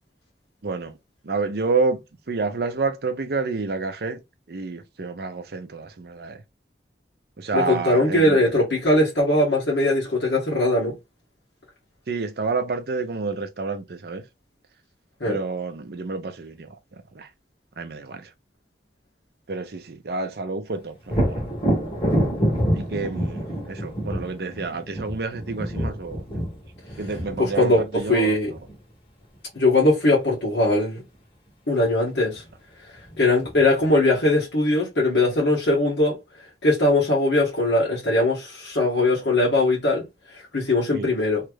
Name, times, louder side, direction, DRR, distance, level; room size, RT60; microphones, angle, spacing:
voice 1, 0.6-0.9 1.2-2.0 2.3-4.2 4.5-6.4 7.4-8.6 12.1-14.2 15.3-17.3 17.8-18.3 19.5-21.4 22.7-26.2 27.0-28.6 40.9-41.1, right 4 dB, 60° right, 0.5 m, -29 dB
voice 2, 7.5-10.9 15.2-15.4 27.4-28.5 29.5-31.0 31.7-32.4 33.2-36.2 36.6-40.0 40.3-41.4, left 2 dB, 75° left, 1.5 m, -20 dB
Thunder, 21.1-28.8 32.4-32.5 33.0-33.9, right 1 dB, 30° left, 1.4 m, -27 dB
3.2 x 2.4 x 3.1 m
head